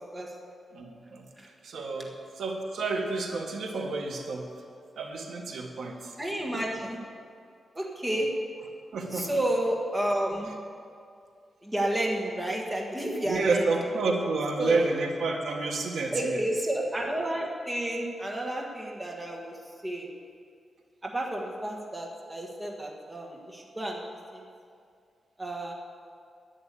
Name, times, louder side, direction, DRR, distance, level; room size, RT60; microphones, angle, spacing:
voice 1, 0.7-1.3 1.6-4.5 5.0-6.1 8.9-9.3 13.2-16.4, right 3 dB, 80° right, 2 dB, 1.6 m, -30 dB
voice 2, 6.2-7.0 7.7-8.3 9.1-10.5 11.6-13.7 14.6-14.8 16.1-19.5 19.8-20.1 21.0-24.0 25.4-25.7, right 1 dB, 15° right, -1 dB, 1.5 m, -30 dB
11.0 x 10.0 x 8.4 m, 2.3 s
wide cardioid pair, 165°, 0 cm